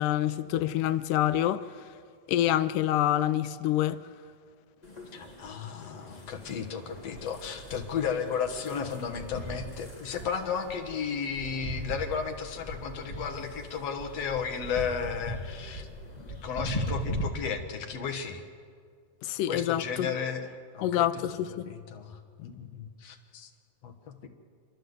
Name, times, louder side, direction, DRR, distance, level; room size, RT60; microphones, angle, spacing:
voice 1, 0.0-1.7 2.3-4.0 19.2-20.1 20.8-21.7, left 12 dB, 80° left, 2.2 m, -26 dB
sound 1, 4.8-17.2, equal, 15° left, 1.8 m, -39 dB
voice 2, 5.1-15.9 16.2-18.4 19.5-20.5 20.7-21.3 21.7-23.5 23.8-24.3, left 6 dB, 55° left, 2.2 m, -34 dB
29.0 x 11.5 x 7.9 m
omnidirectional pair, 3.9 m